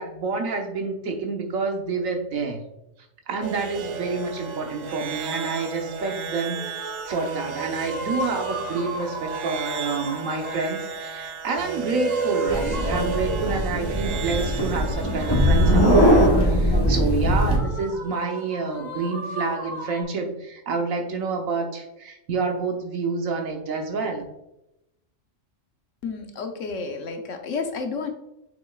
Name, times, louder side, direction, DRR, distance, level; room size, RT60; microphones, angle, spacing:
voice 1, 0.0-2.6 3.3-24.2, right 4 dB, 90° right, 3 dB, 1.4 m, -28 dB
sound 1, 3.4-16.3, right 6 dB, 70° right, 0.4 m, -33 dB
sound 2, 5.2-5.8 6.5-10.7 12.0-13.6 14.7-16.4 17.5-20.0, equal, 25° right, 1.9 m, -37 dB
sound 3, 12.5-17.6, equal, 20° left, 1.1 m, -20 dB
voice 2, 26.0-28.1, left 4 dB, 70° left, 5 dB, 1.2 m, -31 dB
7.0 x 6.4 x 2.4 m, 0.87 s
omnidirectional pair, 1.4 m